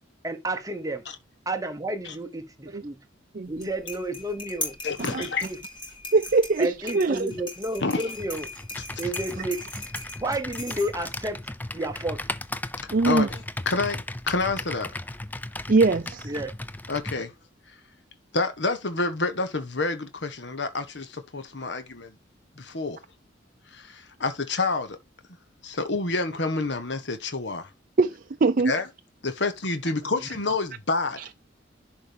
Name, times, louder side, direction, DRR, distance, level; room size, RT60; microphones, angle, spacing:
voice 1, 0.2-1.0 1.5-3.0 3.5-4.8 5.2-5.6 6.6-8.5 9.0-9.6 10.2-11.4 11.7-12.3 16.2-16.5 30.1-30.2, right 1 dB, 20° right, 0.9 m, -31 dB
voice 2, 3.3-3.7 5.0-5.2 6.1-7.3 12.9-13.3 15.7-16.2 28.0-28.7, right 3 dB, 45° right, 0.5 m, -22 dB
sound 1, 3.5-11.2, left 2 dB, 25° left, 4.0 m, -39 dB
voice 3, 4.8-5.4 7.8-8.0 12.8-14.9 16.9-17.3 18.3-22.1 22.6-23.0 23.7-25.0 25.6-27.7 28.6-28.9 29.2-31.3, left 3 dB, 65° left, 1.3 m, -28 dB
Computer keyboard, 8.2-17.2, left 2 dB, 10° left, 0.5 m, -36 dB
11.0 x 5.0 x 3.5 m
head